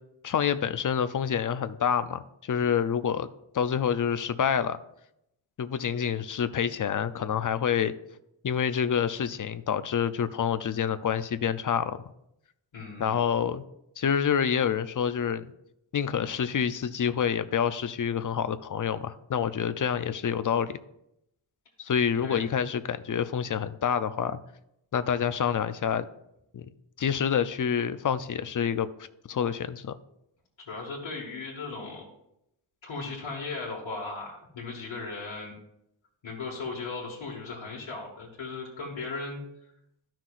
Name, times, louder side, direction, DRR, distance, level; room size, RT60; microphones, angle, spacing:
voice 1, 0.2-3.3 3.5-4.8 5.6-7.9 8.4-12.0 13.0-13.6 14.0-15.5 15.9-20.8 21.8-24.4 24.9-26.1 26.5-26.7 27.0-28.9 29.3-29.9, left 8 dB, 45° left, 13 dB, 0.5 m, -27 dB
voice 2, 12.7-13.2 22.2-22.5 30.7-32.0 32.8-35.5 36.2-39.4, left 3 dB, 70° left, -5 dB, 1.8 m, -37 dB
13.0 x 5.9 x 2.5 m, 0.80 s
wide cardioid pair, 100°, 47 cm